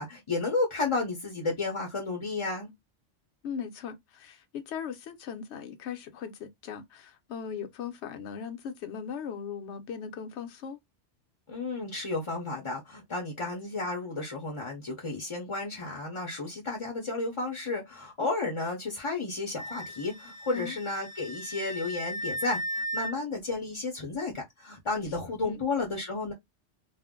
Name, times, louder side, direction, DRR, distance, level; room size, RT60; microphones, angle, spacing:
voice 1, 0.0-2.7 11.5-26.3, left 3 dB, 35° left, 0.6 m, -32 dB
voice 2, 3.4-10.8 18.2-18.3 20.5-20.8 25.4-25.6, left 7 dB, 75° left, 0.9 m, -38 dB
Wind instrument woodwind instrument, 19.6-23.1, equal, 40° right, 0.8 m, -36 dB
2.5 x 2.1 x 3.5 m
omnidirectional pair, 1.2 m